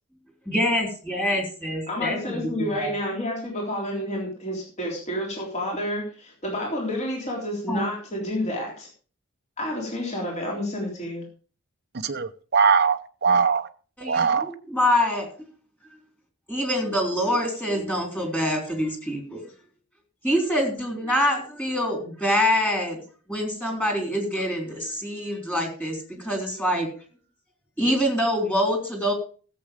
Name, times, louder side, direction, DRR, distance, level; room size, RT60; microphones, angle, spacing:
voice 1, 0.5-2.9 7.7-7.9 14.0-15.3 16.5-19.4 20.2-23.0 23.3-26.9 27.8-29.1, equal, 10° left, 3.6 m, -25 dB
voice 2, 1.9-8.9 9.6-11.2, left 1 dB, 35° left, 3.7 m, -30 dB
voice 3, 12.0-13.7 14.1-14.5, right 5 dB, 50° right, 0.8 m, -21 dB
15.5 x 7.8 x 5.1 m
head